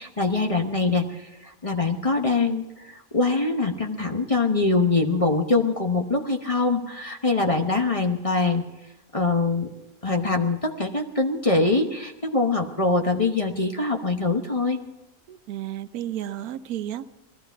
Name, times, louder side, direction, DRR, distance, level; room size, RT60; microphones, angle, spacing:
voice 1, 0.0-8.6 9.1-9.7 10.0-14.8, left 3 dB, 25° left, 3 dB, 0.9 m, -23 dB
voice 2, 15.3-17.1, right 12 dB, 90° right, 13 dB, 1.1 m, -32 dB
19.0 x 13.5 x 4.6 m, 0.98 s
omnidirectional pair, 1.5 m